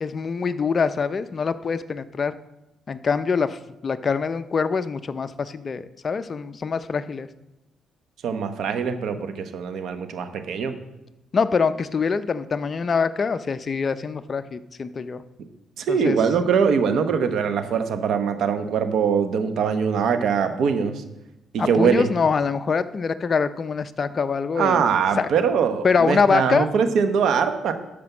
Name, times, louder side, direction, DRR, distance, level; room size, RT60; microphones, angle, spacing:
voice 1, 0.0-2.4 2.9-7.3 11.3-15.2 15.9-16.2 21.6-24.8 25.2-25.3 25.8-26.7, left 5 dB, 40° left, 11 dB, 0.6 m, -24 dB
voice 2, 8.2-10.8 15.8-21.0 21.5-22.1 24.5-27.7, right 6 dB, 70° right, 8 dB, 1.1 m, -22 dB
12.5 x 5.2 x 6.0 m, 0.97 s
cardioid pair, 90°, 0 cm